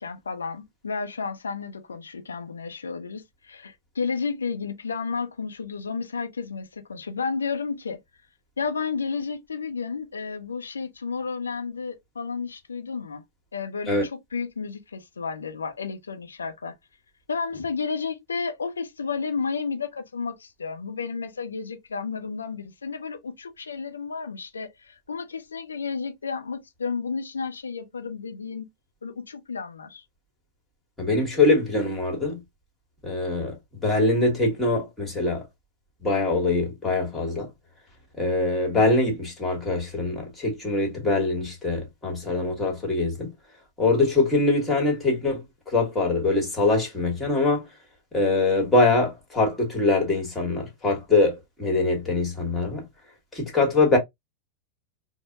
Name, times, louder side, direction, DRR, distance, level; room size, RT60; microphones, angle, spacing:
voice 1, 0.0-8.0 8.6-13.2 13.5-16.7 17.3-28.7 29.0-30.0, left 5 dB, 75° left, 0.6 m, -32 dB
voice 2, 31.0-32.4 33.0-35.4 36.0-37.5 38.2-43.3 43.8-47.6 48.1-52.8 53.3-54.0, left 2 dB, 10° left, 1.5 m, -23 dB
4.6 x 2.1 x 2.5 m
figure-of-eight pair, 90°, 0 cm